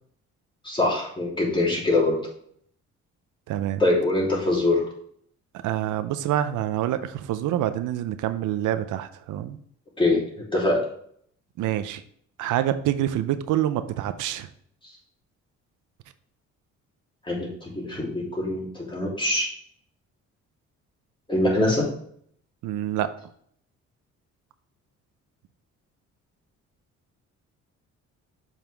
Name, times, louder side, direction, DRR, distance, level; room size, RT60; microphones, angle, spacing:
voice 1, 0.6-2.2 3.8-4.8 10.0-10.2 10.5-10.8 17.3-19.5 21.3-21.9, left 2 dB, 15° left, -3 dB, 3.1 m, -23 dB
voice 2, 3.5-3.8 5.6-9.6 11.6-12.0 12.4-14.5 22.6-23.1, right 12 dB, 85° right, 11 dB, 0.6 m, -26 dB
7.1 x 5.7 x 3.4 m, 0.63 s
cardioid pair, 90°, 30 cm